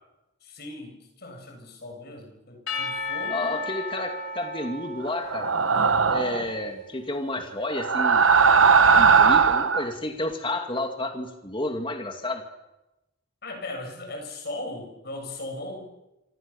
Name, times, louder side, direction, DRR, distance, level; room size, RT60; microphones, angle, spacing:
voice 1, 0.4-3.6 13.4-15.9, left 2 dB, 55° left, 3 dB, 7.0 m, -38 dB
Percussion / Church bell, 2.7-7.0, left 3 dB, 85° left, 3.4 m, -35 dB
voice 2, 3.3-5.5 6.1-8.3 8.9-12.4, left 1 dB, 25° left, 4 dB, 2.4 m, -31 dB
sound 1, 5.3-6.5 7.7-9.9, right 5 dB, 85° right, 1.2 m, -18 dB
27.5 x 25.5 x 7.1 m, 0.98 s
head